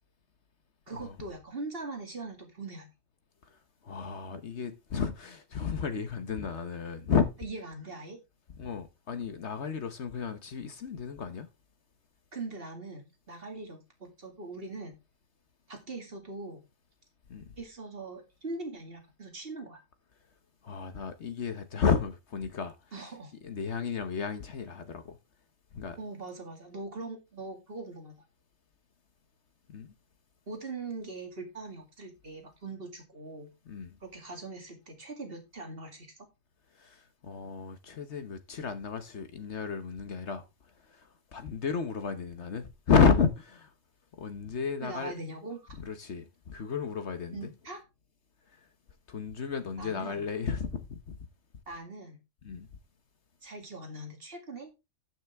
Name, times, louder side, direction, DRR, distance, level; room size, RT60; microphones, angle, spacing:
voice 1, 0.9-2.9 7.4-8.2 12.3-15.0 15.7-16.6 17.6-19.8 22.9-23.3 26.0-28.2 30.5-33.5 34.0-36.1 44.8-45.7 47.3-47.8 49.8-50.3 51.7-52.2 53.4-54.7, right 3 dB, 45° right, 2.5 m, -41 dB
voice 2, 3.8-7.3 8.6-11.5 17.3-17.5 20.6-22.7 23.4-25.2 25.7-26.0 29.7-29.9 33.7-34.0 36.8-40.4 40.9-43.7 44.2-45.1 45.8-47.5 49.1-51.2 52.4-52.7, left 6 dB, 55° left, 1.2 m, -32 dB
13.5 x 6.2 x 3.5 m
omnidirectional pair, 1.4 m